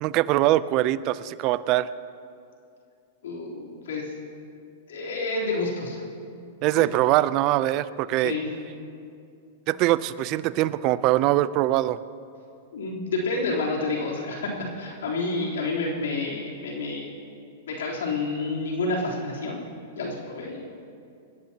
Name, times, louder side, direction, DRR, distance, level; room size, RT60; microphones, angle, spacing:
voice 1, 0.0-1.9 6.6-8.3 9.7-12.0, right 15 dB, 45° right, 16 dB, 0.5 m, -22 dB
voice 2, 3.2-4.1 4.9-6.0 6.8-6.9 8.2-8.5 12.7-14.5 14.8-17.1 17.7-19.6 19.9-20.6, left 3 dB, 80° left, -3 dB, 3.6 m, -29 dB
27.5 x 11.5 x 2.9 m, 2.5 s
hypercardioid pair, 125°, 0 cm